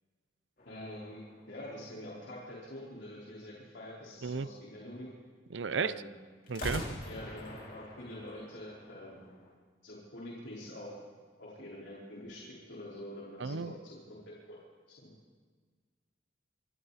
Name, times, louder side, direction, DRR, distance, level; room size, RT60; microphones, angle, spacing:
voice 1, 0.6-5.1 5.7-6.1 6.6-6.7 7.0-9.3 9.8-11.0 11.4-14.2 14.5-14.6 15.0-15.1, left 1 dB, 75° left, -6 dB, 4.5 m, -46 dB
sound 1, 0.6-2.4 6.4-9.5, left 1 dB, 50° left, 3.7 m, -44 dB
voice 2, 5.5-5.9 6.5-6.8 13.4-13.7, right 5 dB, 75° right, 16 dB, 0.6 m, -33 dB
26.0 x 25.0 x 4.2 m, 1.5 s
head